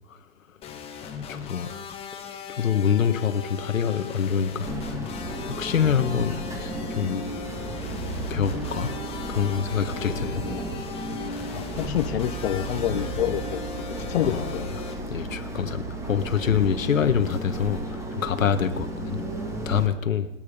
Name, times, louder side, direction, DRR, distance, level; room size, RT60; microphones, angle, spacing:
sound 1, 0.6-14.9, left 7 dB, 15° left, 1.7 m, -39 dB
voice 1, 1.3-1.7 2.1-4.7 5.5-7.2 8.3-9.0 9.3-10.4 12.5-13.1 14.2-14.7 15.1-20.3, left 7 dB, 85° left, 9 dB, 1.8 m, -26 dB
sound 2, 4.6-19.9, right 2 dB, 10° right, 1.8 m, -33 dB
voice 2, 11.5-13.7 14.1-14.6, left 12 dB, 50° left, 9 dB, 0.9 m, -27 dB
28.0 x 9.6 x 5.3 m, 0.92 s
hypercardioid pair, 150°, 39 cm